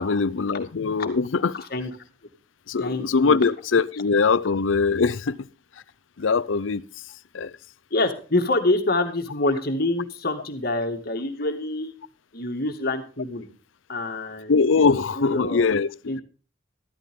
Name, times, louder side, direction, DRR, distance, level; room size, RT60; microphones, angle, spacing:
voice 1, 0.0-1.5 2.7-5.4 6.2-6.8 7.3-7.5 14.5-16.2, left 4 dB, 90° left, 0.6 m, -22 dB
voice 2, 1.5-1.9 2.8-3.5 7.9-11.9 12.3-13.5 13.9-15.7 16.1-16.2, left 2 dB, 55° left, 2.2 m, -26 dB
13.0 x 13.0 x 3.7 m
head